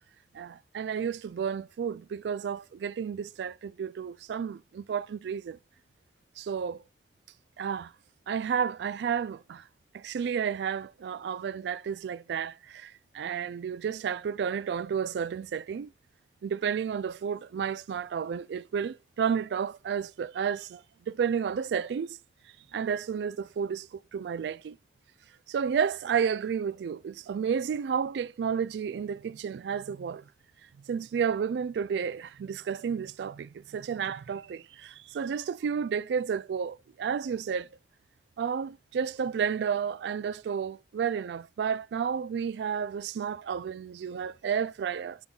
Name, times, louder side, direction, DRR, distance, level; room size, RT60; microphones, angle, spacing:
voice 1, 0.3-5.6 6.4-6.8 7.6-7.9 8.3-9.6 9.9-15.9 16.4-22.2 22.7-23.9 24.1-24.8 25.5-30.2 30.9-37.7 38.4-45.2, right 7 dB, 70° right, 0.3 m, -31 dB
10.5 x 3.9 x 2.3 m
head